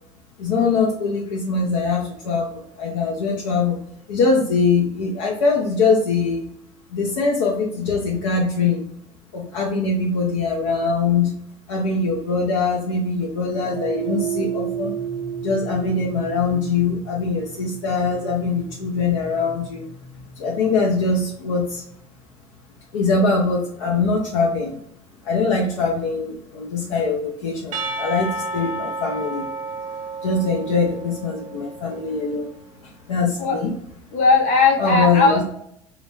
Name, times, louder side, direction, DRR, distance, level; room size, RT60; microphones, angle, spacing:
voice 1, 0.4-3.8 4.1-6.5 6.9-8.8 9.3-11.3 11.7-14.9 15.4-19.9 20.4-21.8 22.9-24.7 25.3-29.5 30.2-32.5 33.1-33.7 34.8-35.3, left 4 dB, 80° left, -2 dB, 0.5 m, -22 dB
sound 1, 13.6-22.1, right 8 dB, 5° left, 0.6 m, -33 dB
Percussion / Church bell, 27.7-31.9, right 2 dB, 55° right, 0.6 m, -31 dB
voice 2, 34.1-35.4, left 3 dB, 55° left, 1 dB, 1.0 m, -17 dB
2.4 x 2.1 x 3.0 m, 0.72 s
hypercardioid pair, 75°, 16 cm